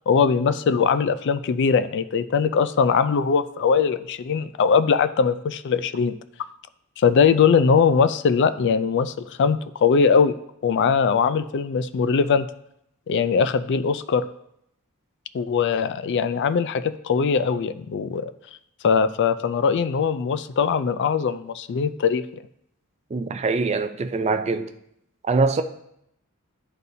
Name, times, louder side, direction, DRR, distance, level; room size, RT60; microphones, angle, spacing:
voice 1, 0.1-6.1 7.0-10.3 10.6-12.5 13.1-14.2 15.3-18.3 18.8-22.2, left 6 dB, 55° left, 0.3 m, -21 dB
voice 2, 23.1-24.7 25.2-25.6, right 4 dB, 30° right, 0.4 m, -23 dB
11.0 x 4.0 x 2.7 m
head